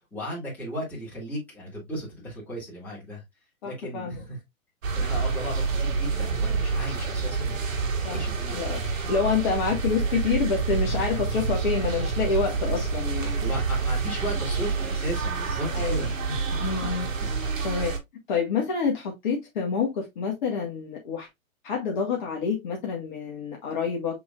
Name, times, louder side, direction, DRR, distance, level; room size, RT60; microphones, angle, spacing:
voice 1, 0.1-3.2 3.6-4.4 4.9-7.6 8.0-8.6 12.7-12.9 13.4-16.6 17.2-17.3, equal, 5° left, 2.0 m, -35 dB
voice 2, 3.6-4.2 8.0-8.2 8.5-8.8 9.1-13.4 15.7-16.1 16.6-17.1 17.6-17.9 18.3-21.3 21.6-24.2, left 5 dB, 35° left, 1.4 m, -27 dB
sound 1, 4.8-18.0, right 4 dB, 65° right, 1.5 m, -28 dB
6.8 x 3.1 x 2.4 m
hypercardioid pair, 150°, 42 cm